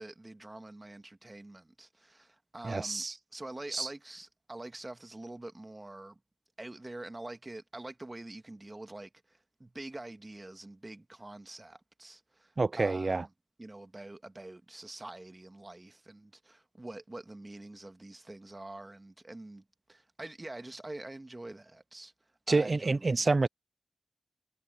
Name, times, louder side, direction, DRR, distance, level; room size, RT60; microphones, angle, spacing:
voice 1, 0.0-3.1 3.3-6.2 6.6-13.3 13.6-22.1 22.5-23.3, right 2 dB, 30° right, 1.8 m, -46 dB
voice 2, 2.6-3.1 3.7-3.9 12.6-13.2 22.5-23.5, right 3 dB, 50° right, 0.5 m, -28 dB
cardioid pair, 45°, 0 cm